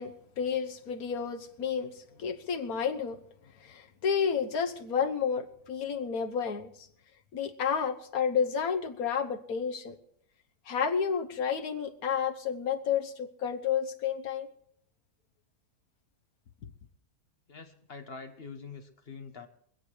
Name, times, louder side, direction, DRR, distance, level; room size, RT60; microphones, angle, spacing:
voice 1, 0.0-3.2 3.6-6.7 7.3-10.0 10.7-14.5, left 7 dB, 70° left, 1.6 m, -31 dB
voice 2, 17.5-19.5, left 5 dB, 40° left, 1.4 m, -45 dB
24.0 x 8.2 x 4.7 m
omnidirectional pair, 1.6 m